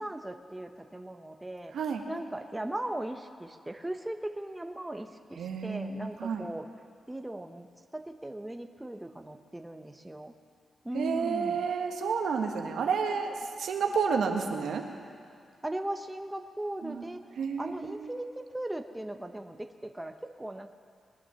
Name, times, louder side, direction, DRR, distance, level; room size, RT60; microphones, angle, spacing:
voice 1, 0.0-1.7 2.1-6.7 7.1-7.7 7.9-10.3 10.8-11.6 15.6-17.2 17.6-20.7, right 1 dB, 10° right, 5 dB, 0.9 m, -38 dB
voice 2, 5.4-6.5 10.9-14.8 16.8-17.0 17.4-18.1, right 5 dB, 80° right, 4 dB, 1.3 m, -30 dB
20.5 x 9.4 x 6.9 m, 2.3 s
cardioid pair, 75°, 0 cm